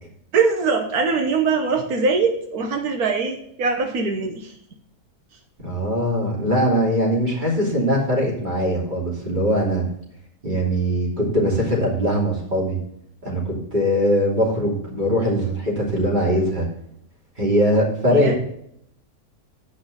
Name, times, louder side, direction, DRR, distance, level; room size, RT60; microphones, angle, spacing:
voice 1, 0.3-4.5 18.1-18.3, right 4 dB, 85° right, 4 dB, 1.5 m, -22 dB
voice 2, 5.6-9.8 10.4-12.8 13.2-16.7 17.4-18.4, equal, 30° right, -3 dB, 3.0 m, -21 dB
8.5 x 5.5 x 6.3 m, 0.71 s
omnidirectional pair, 1.6 m